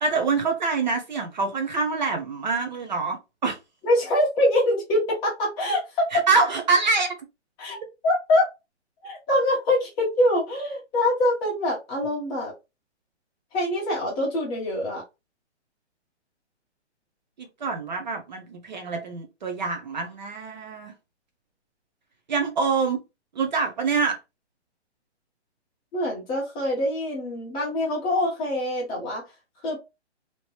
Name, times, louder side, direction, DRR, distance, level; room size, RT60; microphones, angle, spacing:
voice 1, 0.0-3.6 6.1-7.1 17.4-20.9 22.3-23.0 23.4-24.2, right 4 dB, 40° right, 0.6 m, -25 dB
voice 2, 3.8-6.1 7.6-7.8 8.0-8.5 9.0-12.5 13.5-15.0 25.9-29.2 29.6-29.8, left 1 dB, 15° left, 0.9 m, -24 dB
2.9 x 2.9 x 2.9 m
hypercardioid pair, 160°, 35 cm